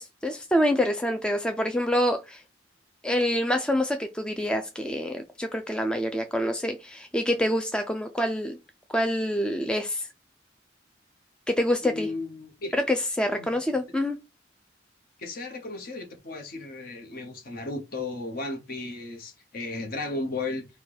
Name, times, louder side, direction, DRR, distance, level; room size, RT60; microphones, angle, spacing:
voice 1, 0.0-2.4 3.0-8.6 8.9-10.1 11.5-12.1 12.7-14.2, equal, 5° left, 0.3 m, -26 dB
voice 2, 11.8-12.7 13.3-13.5 15.2-20.7, left 2 dB, 50° left, 1.0 m, -35 dB
4.3 x 2.2 x 4.6 m
head